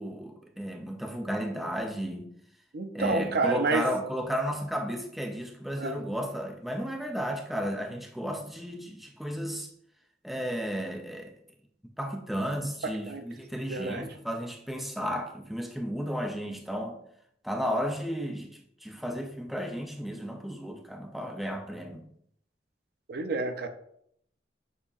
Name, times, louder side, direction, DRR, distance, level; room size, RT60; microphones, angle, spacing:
voice 1, 0.0-2.3 2.9-9.7 10.2-11.3 12.0-17.0 17.4-22.0, equal, ahead, 0.4 m, -33 dB
voice 2, 2.7-3.9 5.8-6.0 12.8-13.2 13.7-14.1 23.1-23.7, right 3 dB, 60° right, 0.5 m, -29 dB
6.8 x 2.8 x 2.4 m
head